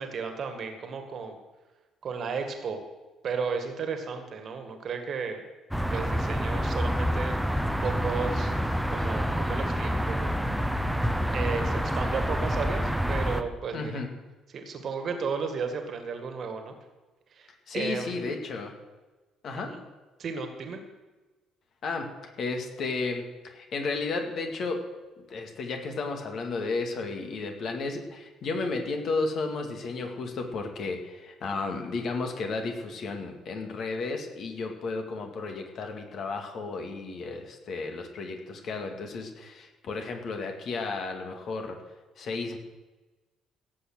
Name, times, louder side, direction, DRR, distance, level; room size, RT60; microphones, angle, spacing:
voice 1, 0.0-1.4 2.0-2.8 3.2-5.4 5.9-7.4 7.8-8.5 8.9-10.4 11.3-14.0 14.5-16.7 17.3-18.2 19.6-19.8 20.2-20.8, right 5 dB, 45° right, 6 dB, 1.9 m, -34 dB
sound 1, 5.7-13.4, equal, ahead, 1.1 m, -27 dB
voice 2, 13.7-14.1 17.7-18.7 19.4-19.8 21.8-22.1 22.4-24.8 25.3-41.8 42.2-42.6, left 3 dB, 45° left, 4 dB, 2.1 m, -33 dB
17.0 x 7.9 x 6.3 m, 1.2 s
figure-of-eight pair, 50°, 0 cm